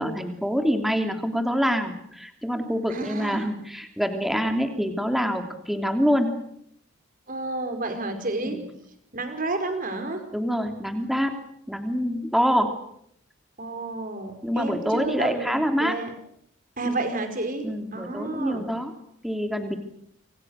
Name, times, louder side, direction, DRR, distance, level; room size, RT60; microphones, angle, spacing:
voice 1, 0.0-6.3 8.5-8.6 10.3-11.3 11.7-12.7 14.4-16.0 17.6-18.9 19.2-19.8, equal, ahead, 5 dB, 3.0 m, -25 dB
voice 2, 2.9-3.5 7.3-8.6 9.1-10.2 13.6-16.1 16.8-18.6, right 2 dB, 40° right, 7 dB, 5.0 m, -30 dB
29.0 x 26.5 x 6.5 m, 0.72 s
head